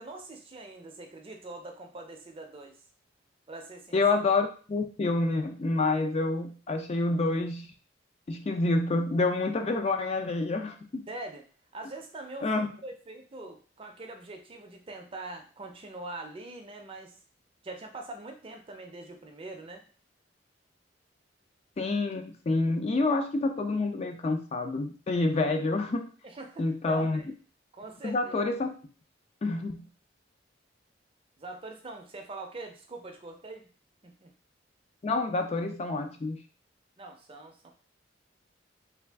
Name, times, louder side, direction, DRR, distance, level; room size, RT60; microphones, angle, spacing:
voice 1, 0.0-2.8 3.5-4.0 11.1-11.4 11.7-17.2 17.6-19.8 26.2-27.3 27.7-28.4 31.4-33.7 34.0-34.3 37.0-37.7, right 2 dB, 30° right, 4 dB, 0.5 m, -43 dB
voice 2, 3.9-7.7 8.3-11.0 12.4-12.7 21.8-26.0 26.6-27.2 28.0-28.7 29.4-29.8 35.0-36.4, left 3 dB, 35° left, 5 dB, 0.4 m, -28 dB
3.4 x 2.3 x 3.3 m, 0.39 s
head